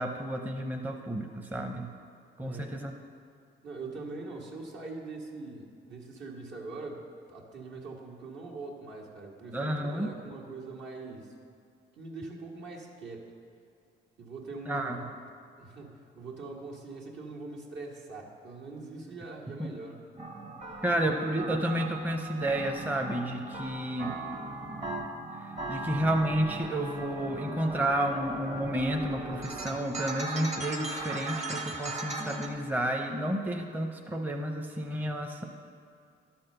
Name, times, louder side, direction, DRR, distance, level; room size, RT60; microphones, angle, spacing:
voice 1, 0.0-1.9 2.4-2.9 9.5-10.1 14.7-15.0 19.6-19.7 20.8-24.1 25.4-35.4, right 1 dB, 10° right, 3 dB, 0.7 m, -31 dB
voice 2, 2.4-2.9 3.6-11.3 12.0-13.3 14.2-15.1 15.6-20.0, right 3 dB, 65° right, -2 dB, 1.7 m, -42 dB
sound 1, 20.2-32.5, right 3 dB, 35° right, 1.2 m, -38 dB
12.0 x 4.4 x 6.6 m, 2.4 s
cardioid pair, 90°, 20 cm